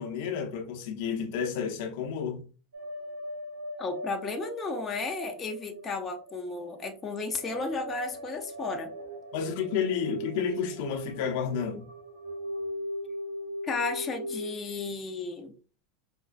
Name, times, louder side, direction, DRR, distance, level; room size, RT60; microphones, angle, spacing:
voice 1, 0.0-2.5 9.3-11.8, left 7 dB, 65° left, 0.7 m, -31 dB
sound 1, 2.7-14.5, equal, 85° right, 1.0 m, -39 dB
voice 2, 3.8-8.9 13.6-15.6, left 3 dB, 25° left, 0.6 m, -33 dB
5.0 x 2.2 x 2.4 m
hypercardioid pair, 90°, 0 cm